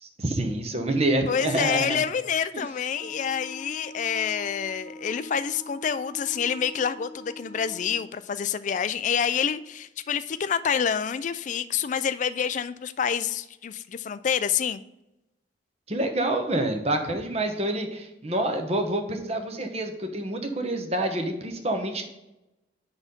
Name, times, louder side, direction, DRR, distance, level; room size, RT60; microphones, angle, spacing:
voice 1, 0.2-2.0 15.9-22.0, right 1 dB, 35° right, 5 dB, 0.9 m, -27 dB
voice 2, 1.2-14.8, left 7 dB, 40° left, 14 dB, 0.3 m, -27 dB
Wind instrument woodwind instrument, 2.9-8.1, equal, 15° left, 1.5 m, -44 dB
9.8 x 4.1 x 5.2 m, 0.95 s
head